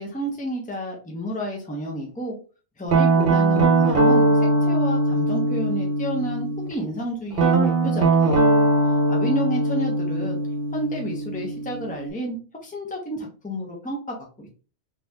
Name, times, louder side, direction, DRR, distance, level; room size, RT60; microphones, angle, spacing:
voice 1, 0.0-2.3 2.8-8.5 8.8-10.4 10.7-14.5, equal, 10° left, 0 dB, 0.8 m, -31 dB
Guitar, 2.9-6.7 7.3-12.1, right 2 dB, 60° right, 1.1 m, -20 dB
4.0 x 2.9 x 2.3 m, 0.35 s
omnidirectional pair, 1.2 m